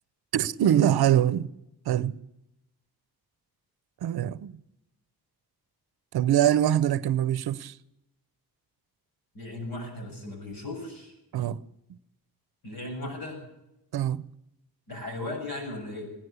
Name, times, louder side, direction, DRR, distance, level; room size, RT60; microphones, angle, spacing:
voice 1, 0.3-1.5 1.9-2.2 4.0-4.5 6.1-7.7 11.3-11.6 13.9-14.2, right 11 dB, 75° right, 0.7 m, -23 dB
voice 2, 9.3-11.1 12.6-13.4 14.9-16.1, left 2 dB, 65° left, 6.9 m, -36 dB
17.0 x 10.5 x 8.0 m
cardioid pair, 85°, 38 cm